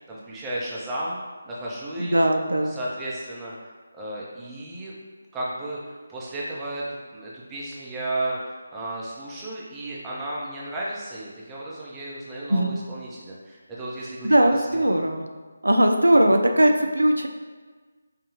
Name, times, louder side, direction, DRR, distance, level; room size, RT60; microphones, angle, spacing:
voice 1, 0.1-2.3 2.7-3.5 3.9-4.9 5.3-14.4 14.7-15.0, right 1 dB, 10° right, -6 dB, 0.7 m, -33 dB
voice 2, 2.0-2.8 12.5-12.8 14.2-15.2 15.6-17.3, right 1 dB, 80° right, 5 dB, 0.3 m, -19 dB
4.8 x 2.3 x 3.1 m, 1.4 s
figure-of-eight pair, 155°, 0 cm